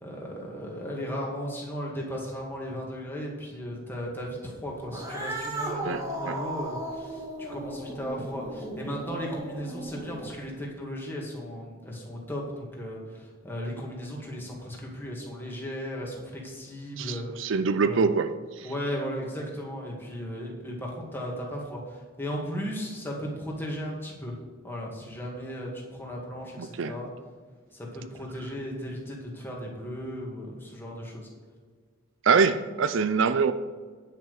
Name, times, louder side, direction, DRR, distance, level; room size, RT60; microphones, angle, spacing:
voice 1, 0.0-17.5 17.8-18.0 18.6-24.3 24.6-27.1 27.7-31.3, equal, 10° left, -2 dB, 2.1 m, -36 dB
Cat, 4.8-10.5, right 1 dB, 15° right, 1.7 m, -36 dB
voice 2, 5.8-6.4 17.0-18.7 26.6-27.0 32.2-33.5, right 5 dB, 60° right, 11 dB, 0.5 m, -25 dB
10.5 x 5.9 x 6.5 m, 1.5 s
head